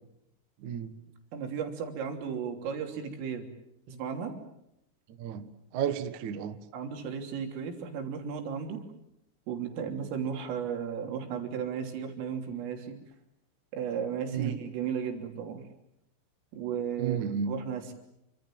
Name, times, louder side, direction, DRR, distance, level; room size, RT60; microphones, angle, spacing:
voice 1, 0.6-0.9 5.2-6.6 14.3-14.6 17.0-17.6, right 8 dB, 65° right, 10 dB, 1.9 m, -32 dB
voice 2, 1.3-3.5 3.9-4.4 6.7-8.8 9.5-13.0 13.7-15.7 16.5-17.2 17.5-17.9, right 7 dB, 80° right, 4 dB, 5.8 m, -35 dB
29.0 x 25.5 x 7.6 m, 0.82 s
omnidirectional pair, 5.8 m